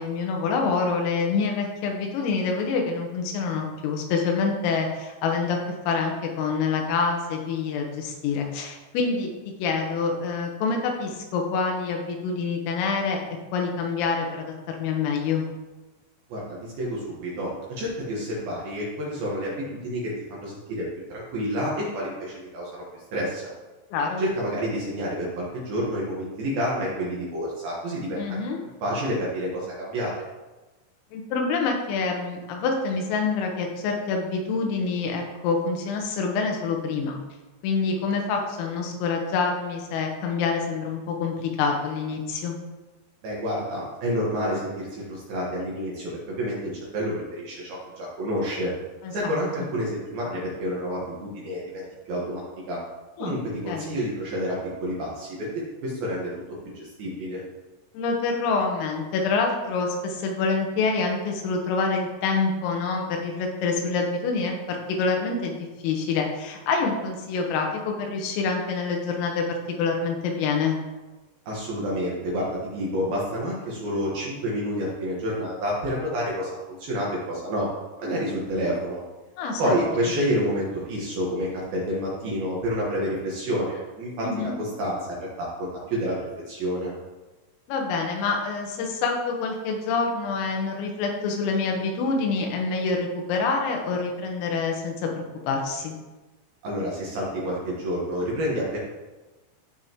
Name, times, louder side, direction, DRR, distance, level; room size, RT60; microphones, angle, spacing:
voice 1, 0.0-5.6 5.9-9.3 9.6-13.2 13.5-15.5 23.9-24.2 28.2-28.6 31.1-37.2 37.6-42.6 49.0-49.1 53.2-53.4 53.7-53.9 58.0-65.6 65.8-69.4 69.8-70.8 79.4-79.7 84.2-84.6 87.7-95.9, left 4 dB, 85° left, 2 dB, 3.8 m, -26 dB
voice 2, 16.3-20.8 21.1-22.7 23.1-23.5 24.2-28.4 28.8-30.1 43.2-48.7 49.1-52.8 53.2-56.3 56.6-57.4 71.5-77.7 78.0-79.0 79.6-86.2 86.5-86.9 96.6-98.8, equal, 65° right, -5 dB, 2.6 m, -29 dB
14.5 x 5.1 x 3.0 m, 1.2 s
omnidirectional pair, 5.9 m